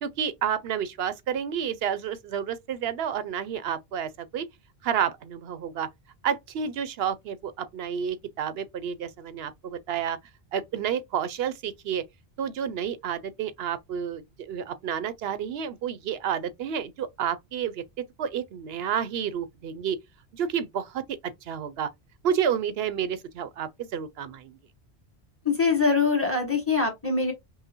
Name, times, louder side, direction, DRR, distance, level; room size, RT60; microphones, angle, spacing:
voice 1, 0.0-4.5 4.8-5.9 6.2-10.2 10.5-12.0 12.4-17.8 18.2-20.0 20.3-21.2 21.5-21.9 22.2-24.6, right 8 dB, 75° right, 0.8 m, -30 dB
voice 2, 25.4-27.3, left 4 dB, 15° left, 1.3 m, -23 dB
5.5 x 2.1 x 2.9 m
omnidirectional pair, 1.1 m